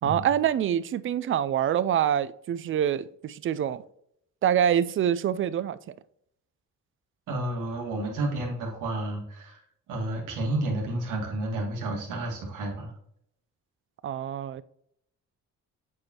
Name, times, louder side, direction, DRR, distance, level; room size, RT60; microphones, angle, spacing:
voice 1, 0.0-3.8 4.4-5.8 14.0-14.6, right 9 dB, 45° right, 0.4 m, -25 dB
voice 2, 7.3-9.6 9.9-12.9, right 2 dB, 90° right, 1.9 m, -31 dB
7.5 x 4.5 x 2.9 m
cardioid pair, 90°, 30 cm